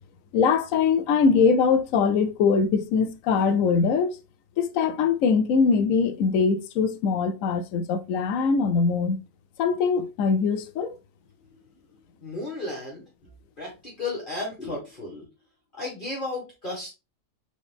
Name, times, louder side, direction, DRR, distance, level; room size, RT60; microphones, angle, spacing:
voice 1, 0.3-4.1 4.6-9.2 9.6-10.9, left 5 dB, 65° left, 0.9 m, -22 dB
voice 2, 12.2-15.3 15.7-16.9, left 2 dB, 35° left, 1.5 m, -34 dB
3.9 x 3.9 x 3.4 m
omnidirectional pair, 1.6 m